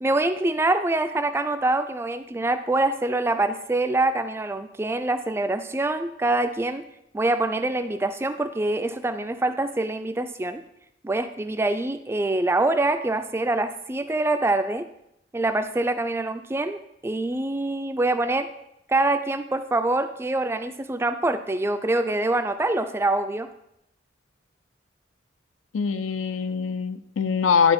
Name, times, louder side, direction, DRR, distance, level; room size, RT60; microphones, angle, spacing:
voice 1, 0.0-6.8 7.1-10.6 11.0-14.9 15.3-18.5 18.9-23.5, right 2 dB, 15° right, 9 dB, 0.3 m, -25 dB
voice 2, 25.7-27.7, left 6 dB, 90° left, 12 dB, 0.5 m, -23 dB
11.0 x 3.8 x 4.3 m, 0.80 s
head